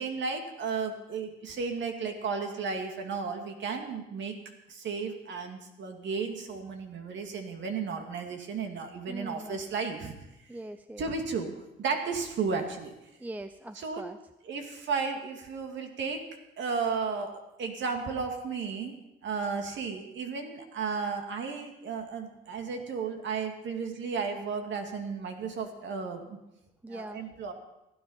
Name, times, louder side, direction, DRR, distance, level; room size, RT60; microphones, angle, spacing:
voice 1, 0.0-4.4 4.7-10.1 11.0-11.5 11.8-12.9 13.8-14.1 14.5-16.2 16.6-19.0 19.2-26.4 26.9-27.5, right 5 dB, 70° right, 4 dB, 2.1 m, -34 dB
voice 2, 9.1-9.6 10.5-11.1 13.2-14.2 26.8-27.3, right 1 dB, 10° right, 11 dB, 0.5 m, -41 dB
15.5 x 9.9 x 5.6 m, 0.92 s
cardioid pair, 90°, 20 cm